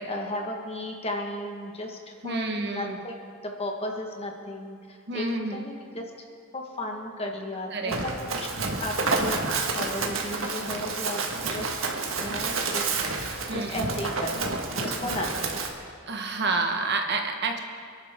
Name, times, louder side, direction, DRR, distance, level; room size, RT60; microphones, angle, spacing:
voice 1, 0.1-5.2 5.5-6.3 6.5-8.5 8.8-11.2 11.5-11.8 12.2-13.1 13.5-15.8 16.5-16.6, left 1 dB, 30° left, 2 dB, 1.5 m, -35 dB
voice 2, 2.2-3.0 5.1-5.6 7.7-8.0 9.5-9.7 13.5-13.9 16.1-17.6, right 3 dB, 50° right, 3 dB, 1.4 m, -29 dB
Run, 7.9-15.7, right 3 dB, 70° right, 1.7 m, -29 dB
27.5 x 11.5 x 3.7 m, 2.2 s
head